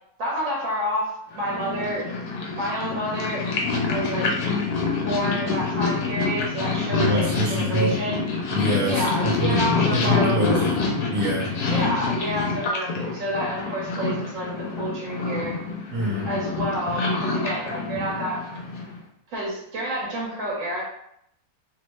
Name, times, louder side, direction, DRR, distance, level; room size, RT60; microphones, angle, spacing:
voice 1, 0.2-2.1 2.5-3.5 3.9-4.3 5.0-8.2 8.8-10.7 11.6-15.6 16.3-18.4 19.3-20.8, equal, 60° right, -4 dB, 1.3 m, -29 dB
Purr, 1.3-19.0, left 4 dB, 85° left, 1.2 m, -26 dB
voice 2, 6.9-8.0 8.5-9.6 9.9-10.6 11.1-11.5 15.9-16.3, right 1 dB, 80° right, -4 dB, 1.2 m, -25 dB
3.0 x 2.1 x 3.0 m, 0.74 s
omnidirectional pair, 1.6 m